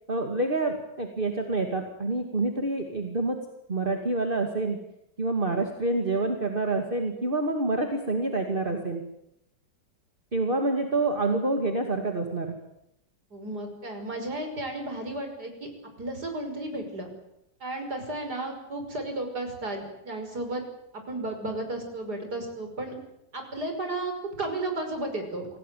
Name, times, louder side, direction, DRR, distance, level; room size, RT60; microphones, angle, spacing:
voice 1, 0.1-3.4 3.7-4.8 5.2-9.0 10.3-12.6, right 2 dB, 30° right, 4 dB, 2.6 m, -27 dB
voice 2, 13.3-15.7 16.0-17.1 17.6-20.6 20.9-23.0 23.3-25.5, right 2 dB, 65° right, 5 dB, 6.4 m, -33 dB
27.0 x 18.5 x 9.3 m, 0.80 s
omnidirectional pair, 1.9 m